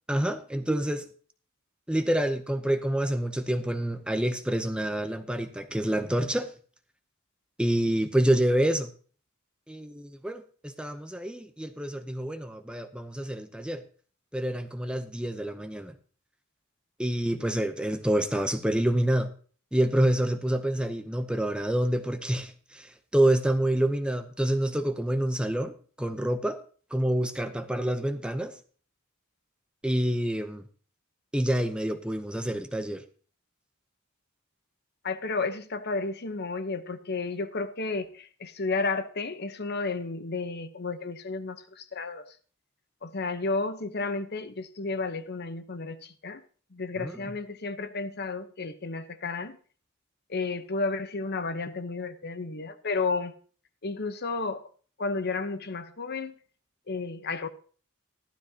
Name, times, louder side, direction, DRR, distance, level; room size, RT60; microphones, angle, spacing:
voice 1, 0.1-1.1 1.9-6.5 7.6-8.9 9.7-13.8 14.3-15.9 17.0-19.3 19.7-26.6 26.9-28.6 29.8-30.7 31.3-33.0 47.0-47.2, right 1 dB, 5° right, 0.7 m, -27 dB
voice 2, 35.0-42.3 43.0-46.4 46.7-49.6 50.3-53.3 53.8-54.6 55.0-56.3 56.9-57.5, left 3 dB, 50° left, 0.9 m, -32 dB
14.0 x 12.5 x 2.9 m
head